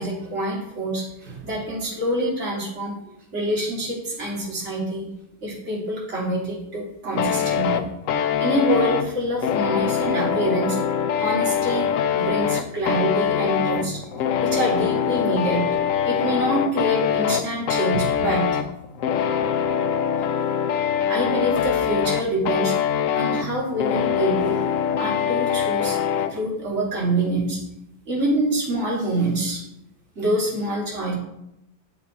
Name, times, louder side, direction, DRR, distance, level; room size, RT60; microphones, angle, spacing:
voice 1, 0.0-2.9 3.3-5.1 5.4-7.8 8.4-10.8 11.2-11.9 12.1-14.0 14.4-15.6 16.0-18.4 21.1-22.7 23.1-24.6 25.0-26.0 26.3-27.6 28.1-29.6 30.1-31.1, right 1 dB, 35° right, -6 dB, 3.3 m, -25 dB
sound 1, 7.2-26.3, left 8 dB, 75° left, 0.7 m, -23 dB
9.9 x 7.7 x 4.6 m, 0.82 s
omnidirectional pair, 2.1 m